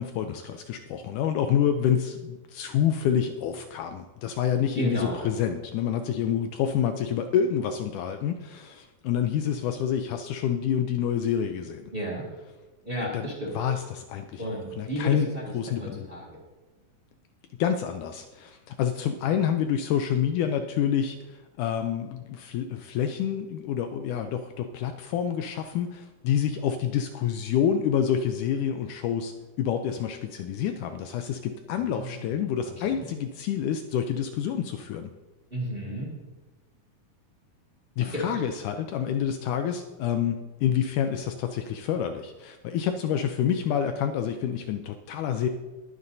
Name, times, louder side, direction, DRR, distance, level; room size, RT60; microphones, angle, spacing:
voice 1, 0.0-11.9 13.0-16.1 17.6-35.1 38.0-45.5, left 9 dB, 80° left, 7 dB, 1.9 m, -28 dB
voice 2, 4.7-5.3 11.9-12.2 12.8-13.6 14.4-16.4 31.7-32.3 32.8-33.1 35.5-36.1 38.0-38.4, right 1 dB, 20° right, -3 dB, 1.7 m, -33 dB
20.5 x 9.6 x 2.7 m, 1.2 s
omnidirectional pair, 3.9 m